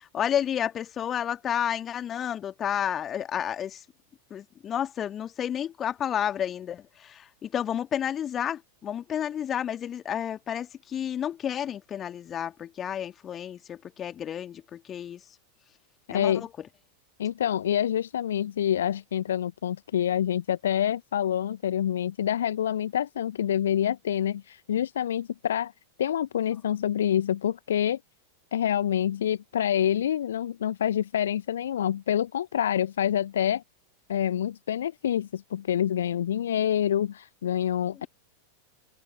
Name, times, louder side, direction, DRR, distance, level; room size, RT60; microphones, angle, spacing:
voice 1, 0.0-3.8 4.3-15.2 16.1-16.5, left 9 dB, 25° left, 2.5 m, -31 dB
voice 2, 16.1-16.5 17.2-25.7 26.0-28.0 28.5-33.6 34.1-38.1, left 10 dB, 65° left, 0.9 m, -27 dB
figure-of-eight pair, 90°, 0 cm